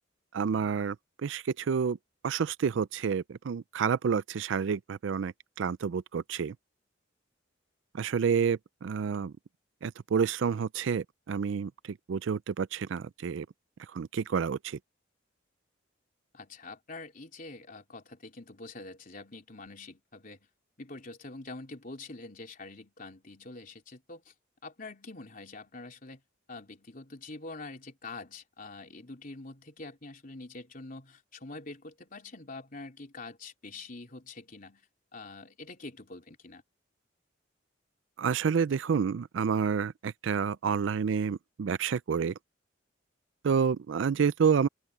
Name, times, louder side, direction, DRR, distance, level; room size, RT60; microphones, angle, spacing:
voice 1, 0.3-1.0 1.2-2.0 2.2-6.5 7.9-9.3 9.8-13.5 13.9-14.8 38.2-42.3 43.4-44.7, right 6 dB, 75° right, 0.4 m, -29 dB
voice 2, 16.3-20.5 20.8-24.3 24.6-26.2 26.5-34.8 35.1-36.6, left 3 dB, 45° left, 3.6 m, -45 dB
open air
head